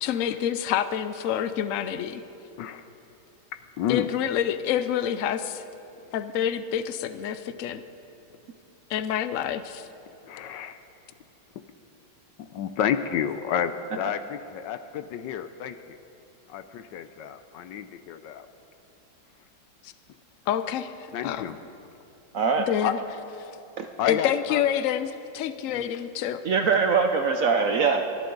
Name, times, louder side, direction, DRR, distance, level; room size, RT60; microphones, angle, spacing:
voice 1, 0.0-2.2 3.9-5.6 6.1-7.8 8.9-9.9 19.8-19.9 20.5-21.5 22.7-23.0 23.4-23.5 24.0-26.4, left 9 dB, 90° left, 11 dB, 0.7 m, -27 dB
voice 2, 3.5-4.1 10.2-10.8 12.4-16.0 16.5-18.5 21.1-21.6 22.8-22.9 24.0-24.6 25.7-25.9, left 9 dB, 75° left, 10 dB, 1.2 m, -30 dB
voice 3, 22.3-22.7 23.8-23.9 26.4-28.0, right 5 dB, 65° right, 5 dB, 0.9 m, -22 dB
28.0 x 10.5 x 3.9 m, 2.9 s
omnidirectional pair, 2.1 m